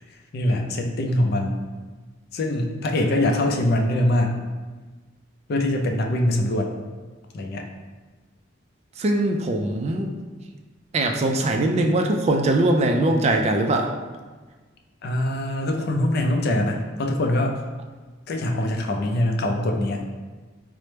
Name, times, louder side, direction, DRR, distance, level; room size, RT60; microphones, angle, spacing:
voice 1, 0.3-1.6 2.3-4.4 5.5-6.7 7.3-7.7 15.0-17.5 18.3-20.0, left 1 dB, 55° left, 3 dB, 0.4 m, -23 dB
voice 2, 9.0-10.1 10.9-13.9, right 1 dB, 35° right, 2 dB, 0.3 m, -21 dB
4.3 x 2.0 x 3.2 m, 1.3 s
head